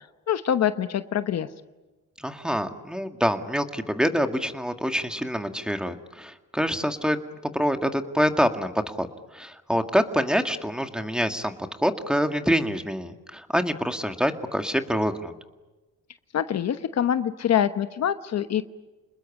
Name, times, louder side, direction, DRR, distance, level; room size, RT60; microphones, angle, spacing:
voice 1, 0.0-1.5 16.3-18.6, left 9 dB, 60° left, 11 dB, 1.1 m, -25 dB
voice 2, 2.2-7.2 7.5-9.1 9.3-15.3, equal, 5° right, 6 dB, 2.0 m, -26 dB
28.5 x 20.5 x 9.9 m, 1.2 s
cardioid pair, 90°, 30 cm